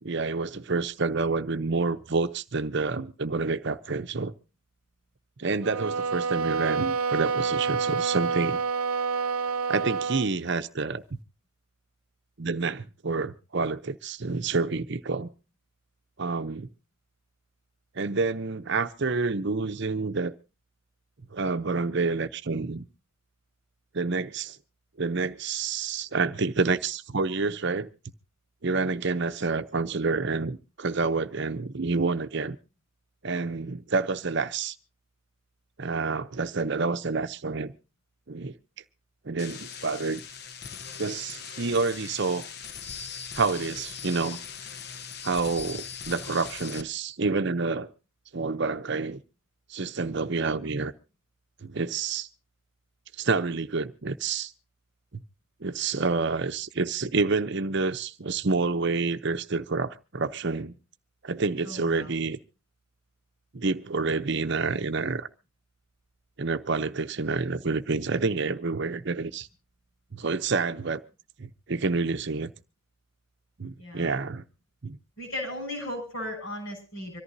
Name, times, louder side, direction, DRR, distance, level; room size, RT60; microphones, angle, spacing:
voice 1, 0.0-4.3 5.4-8.6 9.7-11.0 12.4-15.3 16.2-16.7 17.9-20.3 21.3-22.9 23.9-24.6 25.0-27.9 28.6-32.6 33.2-34.8 35.8-37.7 38.3-38.5 39.2-40.2 41.0-42.5 43.3-44.4 45.2-47.9 48.3-49.2 49.7-50.9 51.6-52.3 53.2-54.5 55.6-60.7 61.2-62.4 63.5-65.3 66.4-69.5 70.1-71.0 71.4-72.5 73.6-74.4 74.8-75.0, right 4 dB, 50° right, 0.7 m, -28 dB
sound 1, 5.6-10.3, right 5 dB, 85° right, 0.7 m, -28 dB
sound 2, 39.4-46.8, left 6 dB, 50° left, 0.8 m, -40 dB
voice 2, 61.6-62.1 73.8-74.2 75.2-77.2, left 1 dB, 65° left, 6.6 m, -36 dB
25.0 x 14.0 x 2.7 m
head